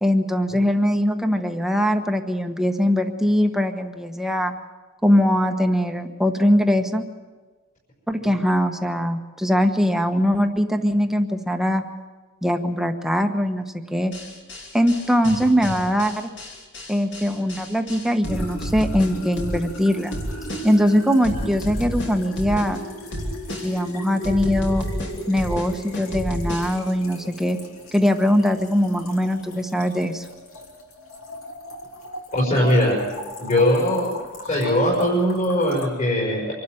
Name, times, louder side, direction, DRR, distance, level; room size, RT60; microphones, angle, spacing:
voice 1, 0.0-4.5 5.0-7.1 8.1-11.8 12.4-14.1 14.7-16.3 16.9-20.1 20.6-22.8 23.6-24.9 25.3-27.6 27.9-30.2, equal, ahead, 5 dB, 1.2 m, -21 dB
sound 1, 14.1-19.8 20.1-20.9 21.2-22.8 23.1-23.9 24.2-26.9, equal, 55° left, 3.3 m, -31 dB
sound 2, 18.2-35.9, equal, 75° left, 3.0 m, -37 dB
voice 2, 32.3-33.0 33.4-34.1 34.4-36.5, left 1 dB, 40° left, -4 dB, 5.3 m, -20 dB
25.5 x 12.5 x 9.0 m, 1.3 s
head